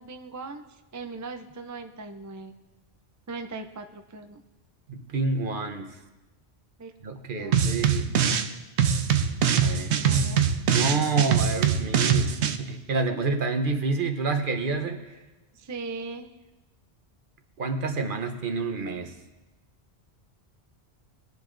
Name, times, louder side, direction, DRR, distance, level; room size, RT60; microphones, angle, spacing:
voice 1, 0.0-2.5 3.3-4.4 6.8-6.9 7.4-7.7 10.0-10.5 15.5-16.3, right 3 dB, 25° right, 6 dB, 0.4 m, -39 dB
voice 2, 4.9-6.0 7.0-8.1 9.6-10.3 10.7-15.2 17.6-19.1, right 3 dB, 55° right, 6 dB, 1.1 m, -28 dB
sound 1, 7.5-8.5 8.8-12.6, right 7 dB, 90° right, 0.9 m, -23 dB
20.0 x 10.5 x 2.6 m, 1.1 s
omnidirectional pair, 1.1 m